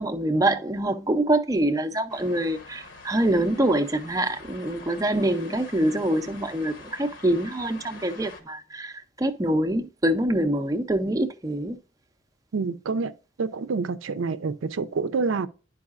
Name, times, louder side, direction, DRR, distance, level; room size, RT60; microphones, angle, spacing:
voice 1, 0.0-11.8, right 1 dB, 15° right, 0.5 m, -25 dB
sound 1, 2.1-8.4, left 3 dB, 70° left, 1.3 m, -45 dB
voice 2, 12.5-13.1 13.4-15.5, right 4 dB, 75° right, 0.5 m, -27 dB
10.5 x 4.7 x 2.4 m
head